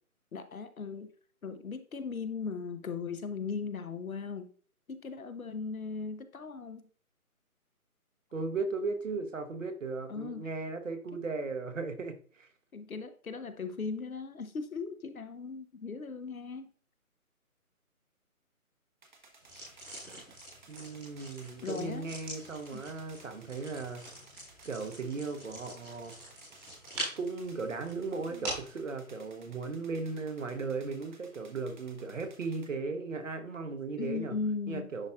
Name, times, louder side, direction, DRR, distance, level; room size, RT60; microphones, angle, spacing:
voice 1, 0.3-1.1 1.4-4.5 4.9-6.8 10.1-10.5 12.7-16.7 21.6-22.1 22.7-22.8 28.3-28.5 34.0-34.9, left 5 dB, 70° left, 9 dB, 1.0 m, -38 dB
voice 2, 8.3-12.5 20.7-24.0 24.6-26.1 27.2-34.4 34.7-35.1, right 4 dB, 60° right, 6 dB, 1.2 m, -36 dB
sound 1, 19.0-32.7, right 3 dB, 30° right, 1.0 m, -59 dB
sound 2, 19.4-28.8, right 1 dB, 5° right, 1.3 m, -44 dB
10.5 x 4.1 x 2.3 m, 0.43 s
figure-of-eight pair, 160°, 44 cm